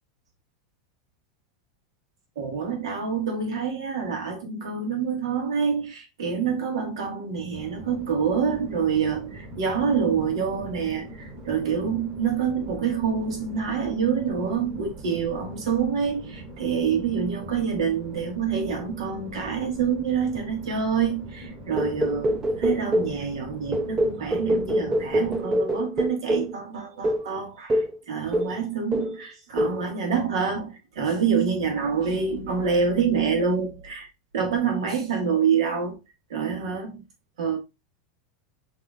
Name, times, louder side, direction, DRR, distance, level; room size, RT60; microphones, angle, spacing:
voice 1, 2.3-34.1 34.3-36.0 36.3-37.0 37.4-37.6, right 6 dB, 85° right, 1.7 m, -26 dB
sound 1, 7.5-25.4, right 1 dB, 40° right, 2.3 m, -42 dB
sound 2, 21.8-23.2 23.7-26.5 27.0-27.3 27.7-28.0 28.3-28.6 28.9-29.2 29.6-29.8, equal, 20° right, 0.6 m, -25 dB
5.9 x 3.0 x 2.4 m
supercardioid pair, 130°, 3 cm